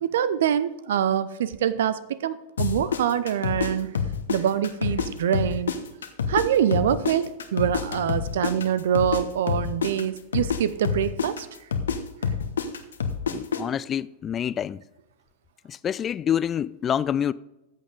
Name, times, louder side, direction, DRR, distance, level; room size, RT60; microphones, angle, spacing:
voice 1, 0.0-3.9 4.3-5.7 6.3-11.5, right 9 dB, 60° right, 0.6 m, -25 dB
sound 1, 2.6-5.1 5.3-9.2 9.5-13.6, left 6 dB, 65° left, 1.0 m, -27 dB
voice 2, 13.3-14.8 15.6-17.3, left 9 dB, 25° left, 0.3 m, -27 dB
14.0 x 8.4 x 3.8 m
figure-of-eight pair, 90°, 0 cm